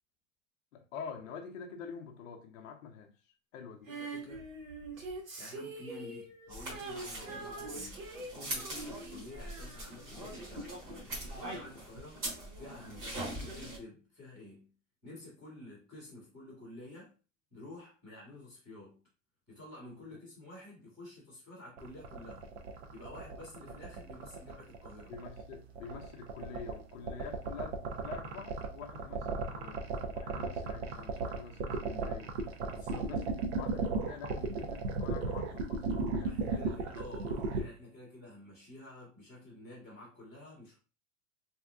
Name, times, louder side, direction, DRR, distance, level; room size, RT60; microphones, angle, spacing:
voice 1, 0.7-3.1 3.5-3.9 25.1-29.9 30.1-32.4 32.9-36.7, left 6 dB, 70° left, 0.6 m, -46 dB
voice 2, 3.9-4.4 5.4-8.0 8.3-11.1 11.5-12.2 12.6-14.7 15.0-17.1 17.5-19.0 19.5-22.5 22.9-25.1 32.6-33.1 36.2-40.8, left 1 dB, 5° right, 0.3 m, -50 dB
Female singing, 3.9-10.8 12.0-12.1, right 2 dB, 75° right, 1.3 m, -45 dB
sound 1, 6.5-13.8, right 1 dB, 25° right, 0.9 m, -42 dB
sound 2, 21.8-37.6, right 4 dB, 55° right, 0.6 m, -35 dB
3.4 x 2.8 x 2.3 m
supercardioid pair, 170°, 40 cm